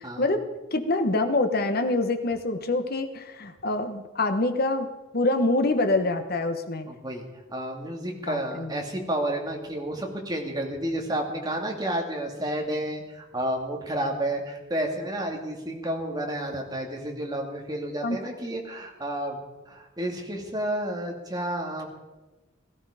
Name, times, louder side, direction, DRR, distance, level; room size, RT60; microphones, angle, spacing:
voice 1, 0.7-6.9 8.3-8.7 18.0-18.2, left 2 dB, 50° left, 8 dB, 1.2 m, -25 dB
voice 2, 6.9-19.4 19.7-21.9, right 1 dB, 20° right, 1 dB, 2.3 m, -31 dB
17.5 x 14.5 x 5.0 m, 1.1 s
head